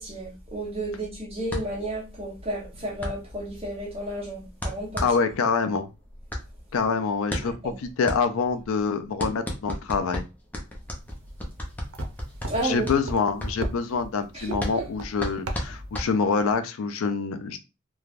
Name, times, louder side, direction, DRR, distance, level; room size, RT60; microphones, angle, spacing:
voice 1, 0.0-5.0 7.4-7.7 12.5-12.9 14.3-14.9, right 1 dB, 30° right, 0.9 m, -32 dB
sound 1, 1.5-16.6, equal, 10° left, 0.5 m, -35 dB
voice 2, 5.0-5.9 6.7-10.2 12.6-17.6, left 5 dB, 85° left, 0.4 m, -26 dB
sound 2, 11.0-16.2, right 1 dB, 90° right, 0.5 m, -38 dB
3.2 x 2.2 x 2.4 m
head